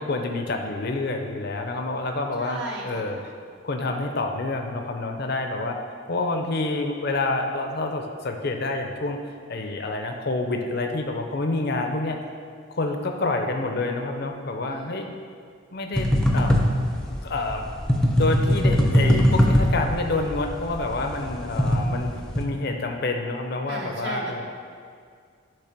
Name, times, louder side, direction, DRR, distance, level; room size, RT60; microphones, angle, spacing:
voice 1, 0.0-3.2 3.6-5.8 6.1-9.2 9.5-12.2 12.7-15.1 15.7-16.5 17.1-17.6 18.2-24.4, left 2 dB, 50° left, 4 dB, 0.6 m, -28 dB
voice 2, 2.4-3.2 14.6-15.0 23.7-24.4, right 2 dB, 55° right, -2 dB, 1.0 m, -36 dB
sound 1, 16.0-22.4, equal, 5° left, 0.6 m, -21 dB
10.0 x 3.4 x 5.9 m, 2.1 s
head